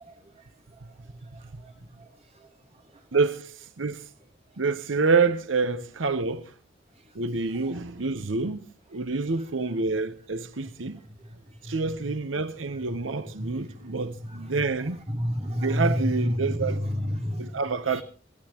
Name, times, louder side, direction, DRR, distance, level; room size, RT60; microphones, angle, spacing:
voice 1, 3.1-4.1 4.6-6.5 7.1-8.6 8.9-11.0 11.6-15.0 15.6-16.7 17.4-18.0, right 4 dB, 85° right, 0.9 m, -27 dB
voice 2, 11.6-12.1 13.4-13.9 14.2-18.0, equal, 35° right, 3.4 m, -30 dB
26.5 x 15.0 x 3.0 m
head